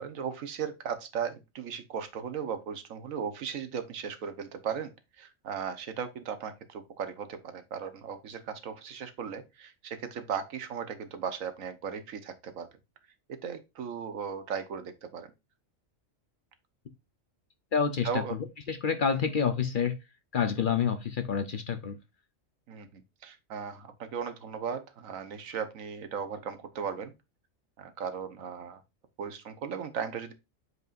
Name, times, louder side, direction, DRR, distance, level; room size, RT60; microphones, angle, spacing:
voice 1, 0.0-4.9 5.2-12.7 13.4-15.3 18.0-18.4 22.7-27.1 27.8-28.8 29.2-30.3, right 7 dB, 85° right, 1.3 m, -37 dB
voice 2, 17.7-18.2 18.7-20.0 20.3-22.0, left 6 dB, 50° left, 0.7 m, -28 dB
8.0 x 4.8 x 2.5 m
omnidirectional pair, 1.4 m